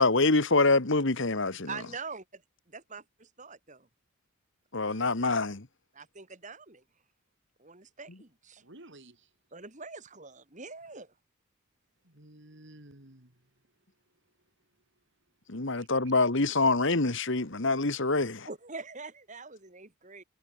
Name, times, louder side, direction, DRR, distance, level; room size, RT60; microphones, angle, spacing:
voice 1, 0.0-1.7 4.7-5.7 15.5-18.5, left 3 dB, 55° left, 1.7 m, -25 dB
voice 2, 1.7-2.4 2.7-3.9 4.9-5.0 5.9-6.8 7.6-8.6 9.5-11.1 18.5-20.2, right 4 dB, 35° right, 2.7 m, -44 dB
voice 3, 8.6-9.3 12.0-13.3 15.7-15.9, right 1 dB, 55° right, 3.2 m, -52 dB
head